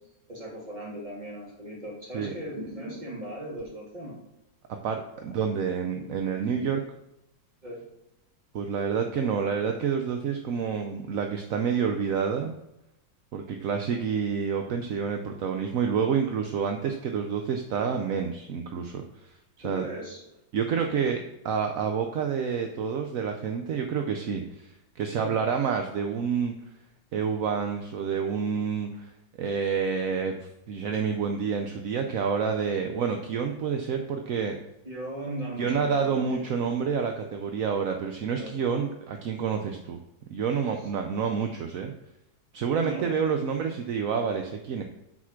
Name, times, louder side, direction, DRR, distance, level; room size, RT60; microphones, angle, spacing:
voice 1, 0.3-4.2 5.9-6.4 7.6-7.8 19.6-20.2 25.1-25.4 32.8-33.0 34.8-36.5 38.4-38.6 42.8-43.1, right 1 dB, 25° right, -4 dB, 2.7 m, -38 dB
voice 2, 4.8-6.8 8.5-12.5 13.3-19.0 19.6-19.9 20.5-26.6 27.1-29.1 29.4-30.3 30.7-34.6 35.6-40.0 40.3-41.9 42.5-44.8, right 6 dB, 60° right, 4 dB, 1.0 m, -28 dB
8.2 x 4.9 x 5.9 m, 0.88 s
omnidirectional pair, 2.0 m